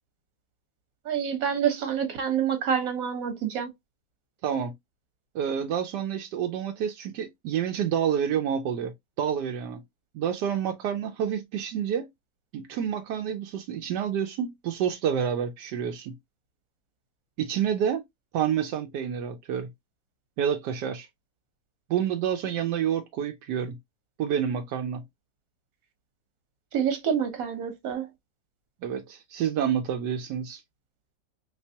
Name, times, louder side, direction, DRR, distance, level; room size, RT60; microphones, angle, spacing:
voice 1, 1.1-3.7 26.7-28.1, right 8 dB, 60° right, 1.4 m, -27 dB
voice 2, 4.4-4.7 5.3-9.8 10.1-12.1 12.5-16.2 17.4-18.0 18.3-19.7 20.4-21.1 21.9-23.8 24.2-25.0 28.8-30.6, right 8 dB, 85° right, 1.2 m, -28 dB
3.3 x 3.0 x 2.6 m
omnidirectional pair, 1.8 m